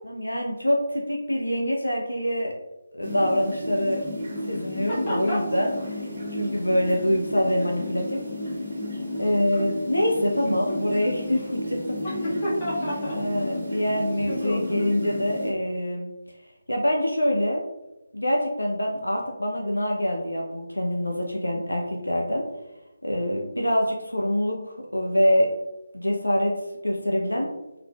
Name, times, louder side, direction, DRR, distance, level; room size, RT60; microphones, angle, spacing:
voice 1, 0.1-2.5 2.9-4.0 4.5-5.9 6.3-8.2 9.2-12.0 13.1-16.1 16.7-17.6 18.1-22.4 23.0-25.5 25.9-26.5 26.8-27.5, equal, 85° left, 1 dB, 0.5 m, -25 dB
sound 1, 3.0-15.5, left 1 dB, 35° right, 1.4 m, -32 dB
voice 2, 4.9-5.4 12.0-13.2 14.3-14.9, equal, 25° left, -9 dB, 1.5 m, -30 dB
3.5 x 3.2 x 2.2 m, 0.98 s
figure-of-eight pair, 155°, 0 cm